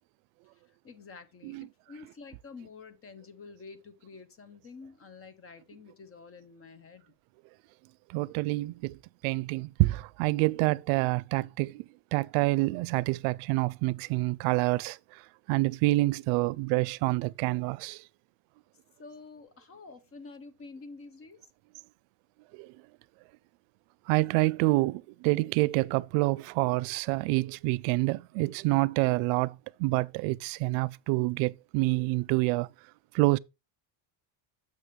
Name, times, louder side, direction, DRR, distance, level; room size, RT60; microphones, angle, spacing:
voice 1, 0.5-7.0 19.0-21.5, left 4 dB, 25° left, 0.8 m, -49 dB
voice 2, 8.1-9.0 9.2-15.2 15.5-18.0 22.5-22.7 24.1-32.7 33.1-33.4, right 21 dB, 85° right, 0.5 m, -27 dB
7.2 x 6.5 x 3.2 m
cardioid pair, 160°, 49 cm